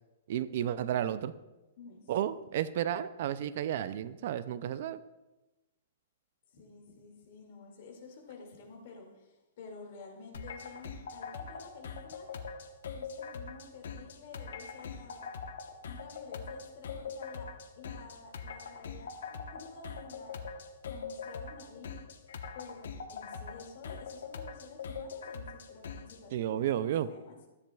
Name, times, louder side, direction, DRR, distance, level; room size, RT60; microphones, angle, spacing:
voice 1, 0.3-1.3 2.1-5.0 26.3-27.1, right 10 dB, 45° right, 15 dB, 0.3 m, -32 dB
voice 2, 1.8-2.3 6.5-12.4 12.9-15.5 15.8-20.5 20.8-22.0 22.5-27.4, left 4 dB, 45° left, 1 dB, 2.2 m, -51 dB
sound 1, 10.3-26.2, left 5 dB, 70° left, 1.0 m, -43 dB
13.0 x 10.0 x 2.3 m, 1.0 s
hypercardioid pair, 175°, 0 cm